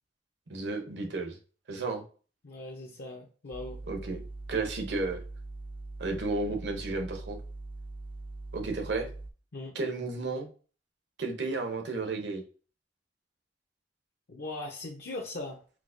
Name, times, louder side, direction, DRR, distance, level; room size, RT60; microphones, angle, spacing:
voice 1, 0.5-1.4 1.7-2.0 3.9-4.2 4.5-5.2 6.0-7.4 8.5-9.1 9.7-10.5 11.2-12.4, right 3 dB, 85° right, 4 dB, 0.8 m, -32 dB
voice 2, 2.4-3.8 9.5-9.7 14.3-15.6, left 2 dB, 60° left, -1 dB, 0.6 m, -39 dB
sound 1, 3.5-9.3, right 2 dB, 10° right, 0.4 m, -42 dB
4.5 x 2.1 x 2.5 m, 0.38 s
head